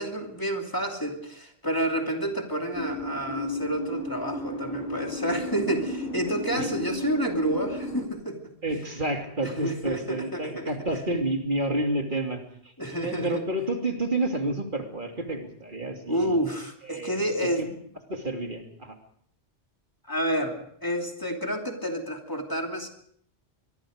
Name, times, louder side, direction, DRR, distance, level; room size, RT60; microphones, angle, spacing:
voice 1, 0.0-8.5 9.4-10.7 12.8-13.4 16.1-17.8 20.1-22.9, right 1 dB, 20° left, 2 dB, 2.8 m, -29 dB
sound 1, 2.7-8.1, left 1 dB, 45° left, 3.0 m, -33 dB
voice 2, 8.6-12.4 13.0-16.4 16.9-17.2 17.6-17.7 18.1-18.9, right 2 dB, 45° right, 3 dB, 3.0 m, -29 dB
24.5 x 23.0 x 5.2 m, 0.65 s
omnidirectional pair, 1.1 m